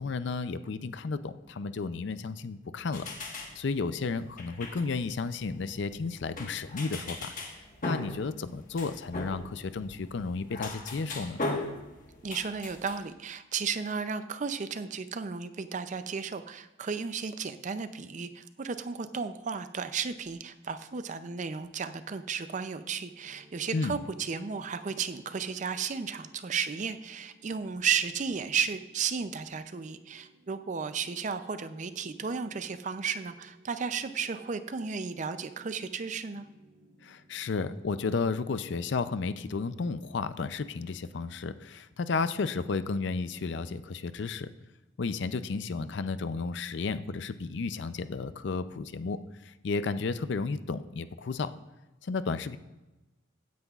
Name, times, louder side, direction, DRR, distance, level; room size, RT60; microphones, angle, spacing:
voice 1, 0.0-3.0 3.3-7.3 7.8-11.4 23.7-24.0 37.0-44.5 45.0-51.5 52.0-52.6, left 4 dB, 60° left, 13 dB, 0.4 m, -33 dB
sound 1, 2.9-13.0, left 2 dB, 40° left, 1.3 m, -39 dB
voice 2, 12.2-36.5, right 6 dB, 40° right, 11 dB, 0.4 m, -34 dB
sound 2, 23.2-42.8, right 1 dB, 60° right, 3.3 m, -60 dB
16.0 x 9.4 x 2.4 m, 1.0 s
head